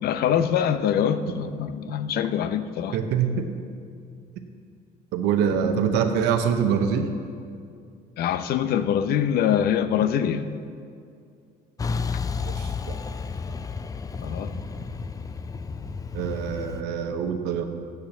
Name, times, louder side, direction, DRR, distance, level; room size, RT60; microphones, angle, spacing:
voice 1, 0.0-3.0 8.2-10.4 14.2-14.5, left 9 dB, 65° left, 11 dB, 0.6 m, -24 dB
voice 2, 2.9-3.5 5.1-7.1 12.5-12.9 16.1-17.6, right 7 dB, 90° right, 6 dB, 0.7 m, -24 dB
Truck, 11.8-16.8, left 5 dB, 20° left, 0.4 m, -32 dB
8.0 x 6.8 x 7.0 m, 2.3 s
cardioid pair, 110°, 17 cm